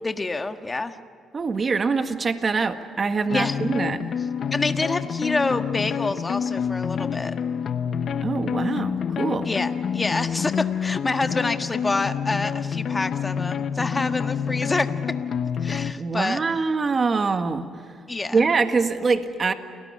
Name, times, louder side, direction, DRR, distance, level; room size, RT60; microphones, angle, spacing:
voice 1, 0.0-1.0 3.3-3.6 4.5-7.4 9.4-15.2 15.6-16.4 18.1-18.4, left 3 dB, 20° left, 8 dB, 1.5 m, -27 dB
voice 2, 1.3-4.1 8.2-9.5 16.0-17.7 18.3-19.5, right 4 dB, 40° right, 8 dB, 1.8 m, -24 dB
sound 1, 3.3-15.9, left 7 dB, 60° left, 1.0 m, -28 dB
29.0 x 19.0 x 9.7 m, 2.3 s
cardioid pair, 90°, 0 cm